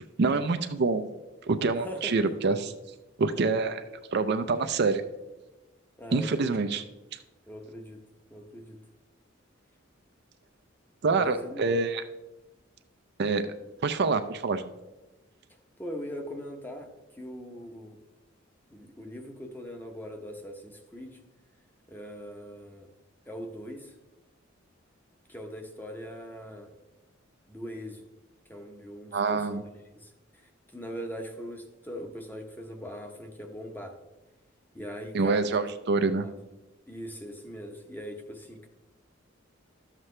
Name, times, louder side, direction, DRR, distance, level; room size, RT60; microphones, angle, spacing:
voice 1, 0.2-1.0 1.5-2.7 3.2-3.8 4.1-5.0 6.1-6.8 7.1-7.2 11.0-12.0 13.2-13.5 13.8-14.7 29.1-29.6 35.1-36.3, right 4 dB, 55° right, 9 dB, 0.5 m, -26 dB
voice 2, 1.7-2.3 6.0-6.6 7.5-8.0 8.3-8.8 11.1-11.8 15.8-16.9 17.1-18.0 18.7-21.2 21.9-22.9 23.3-23.9 25.3-26.7 27.5-28.0 28.5-29.7 29.9-33.9 34.7-35.5 35.9-36.4 36.9-38.7, equal, 10° left, 4 dB, 0.9 m, -41 dB
12.0 x 7.4 x 3.2 m, 1.1 s
head